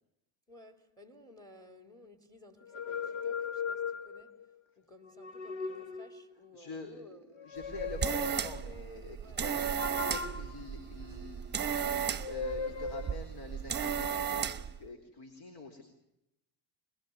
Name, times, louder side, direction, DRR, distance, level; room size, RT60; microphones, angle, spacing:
voice 1, 0.5-4.4 4.8-7.5 9.2-9.4, left 2 dB, 10° left, 3.4 m, -56 dB
sound 1, 2.6-4.4 5.1-6.4 7.3-8.7 9.8-11.6 12.2-13.2, left 5 dB, 70° left, 1.7 m, -38 dB
voice 2, 6.5-15.8, left 3 dB, 55° left, 4.3 m, -46 dB
sound 2, 7.6-14.8, right 8 dB, 20° right, 1.2 m, -35 dB
25.0 x 21.5 x 9.5 m
cardioid pair, 140°, 48 cm